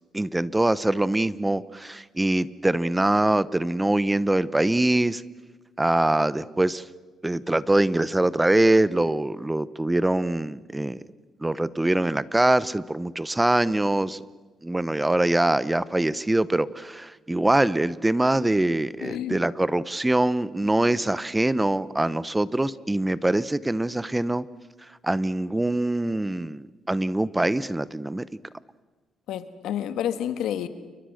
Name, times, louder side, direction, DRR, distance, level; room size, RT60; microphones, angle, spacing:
voice 1, 0.1-5.2 5.8-6.8 7.2-11.0 11.4-14.2 14.6-24.4 24.8-28.4, right 1 dB, 10° right, 18 dB, 0.8 m, -23 dB
voice 2, 19.0-19.4 29.3-30.7, left 10 dB, 85° left, 12 dB, 1.7 m, -29 dB
29.0 x 23.5 x 6.5 m, 1.3 s
cardioid pair, 90°, 0 cm